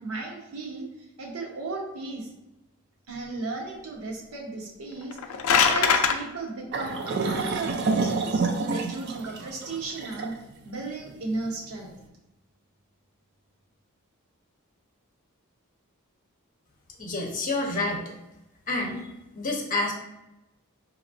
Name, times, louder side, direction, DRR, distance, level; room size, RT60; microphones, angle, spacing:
voice 1, 0.0-2.3 3.1-5.2 5.7-10.3 10.6-11.9, right 3 dB, 90° right, 0 dB, 0.9 m, -35 dB
sound 1, 5.0-6.2, left 6 dB, 70° left, 0.4 m, -21 dB
sound 2, 6.7-11.9, right 4 dB, 50° right, 0.4 m, -29 dB
voice 2, 17.0-18.0 18.7-19.0 19.3-19.9, left 2 dB, 35° left, -1 dB, 0.8 m, -28 dB
5.0 x 2.9 x 2.6 m, 0.93 s
head